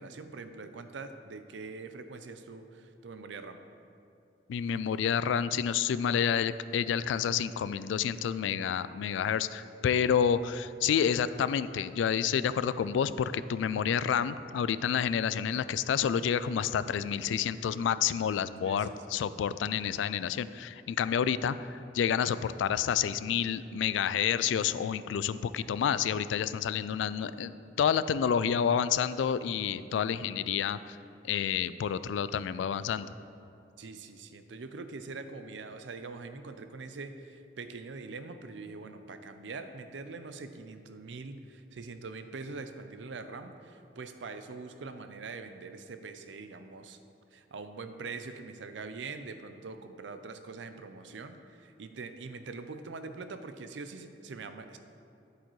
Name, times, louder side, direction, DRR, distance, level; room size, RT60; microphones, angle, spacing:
voice 1, 0.0-3.6 18.6-19.0 33.8-47.0 47.3-54.8, right 4 dB, 75° right, 9 dB, 0.5 m, -43 dB
voice 2, 4.5-31.0 31.2-33.1, left 8 dB, 85° left, 15 dB, 0.3 m, -29 dB
10.5 x 8.2 x 3.1 m, 2.6 s
head